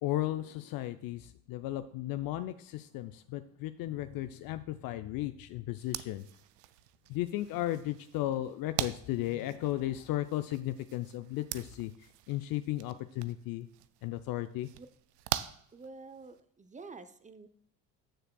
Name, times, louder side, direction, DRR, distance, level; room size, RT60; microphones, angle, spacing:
voice 1, 0.0-6.3 7.1-11.9 12.3-13.7 14.0-14.7, left 14 dB, 50° left, 11 dB, 0.5 m, -35 dB
sound 1, 5.8-16.4, right 14 dB, 80° right, 0.5 m, -43 dB
voice 2, 15.7-17.5, right 3 dB, 15° right, 11 dB, 0.8 m, -48 dB
14.0 x 6.5 x 2.3 m, 0.67 s
hypercardioid pair, 60°, 47 cm